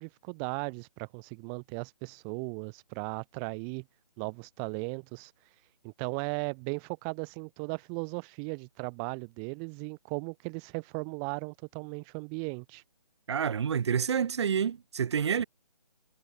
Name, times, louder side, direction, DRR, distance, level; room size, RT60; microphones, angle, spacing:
voice 1, 0.0-3.8 4.2-5.3 5.8-12.8, right 40 dB or more, 10° right, 1.1 m, -37 dB
voice 2, 13.3-15.4, right 7 dB, 40° right, 4.8 m, -28 dB
hypercardioid pair, 165°, 21 cm